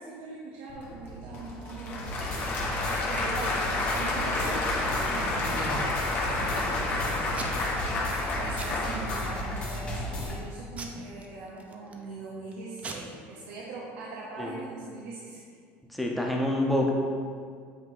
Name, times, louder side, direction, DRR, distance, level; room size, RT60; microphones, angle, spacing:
voice 1, 0.0-4.6 5.1-15.4, right 3 dB, 90° right, -4 dB, 1.0 m, -42 dB
Applause / Crowd, 0.7-10.3, left 2 dB, 45° left, 1.2 m, -31 dB
sound 1, 2.0-10.4, left 2 dB, 20° left, 1.1 m, -36 dB
Packing tape duct tape / Tearing, 4.7-5.9 6.4-6.9 7.3-7.8 8.1-8.3 8.6-9.3 9.7-10.1 10.8-12.0 12.5-12.6 12.8-12.9, right 3 dB, 25° right, 0.6 m, -41 dB
voice 2, 15.9-16.9, left 1 dB, ahead, -2 dB, 0.8 m, -26 dB
8.3 x 3.0 x 4.6 m, 2.1 s
cardioid pair, 135°, 5 cm